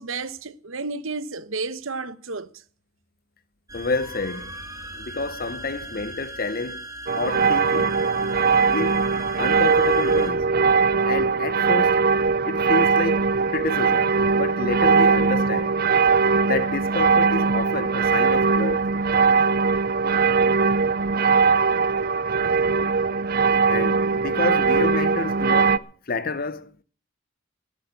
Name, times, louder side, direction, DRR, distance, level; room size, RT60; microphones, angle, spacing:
voice 1, 0.0-2.5, right 3 dB, 75° right, 1.1 m, -32 dB
voice 2, 3.7-4.6 4.9-6.9 7.1-8.0 8.7-9.0 9.4-10.5 11.0-12.1 12.4-15.7 16.4-18.9 23.7-26.7, left 3 dB, 45° left, 0.8 m, -29 dB
sound 1, 3.7-10.3, right 1 dB, 15° right, 2.6 m, -38 dB
sound 2, 7.1-25.8, right 5 dB, 45° right, 0.6 m, -20 dB
13.5 x 8.9 x 9.6 m
head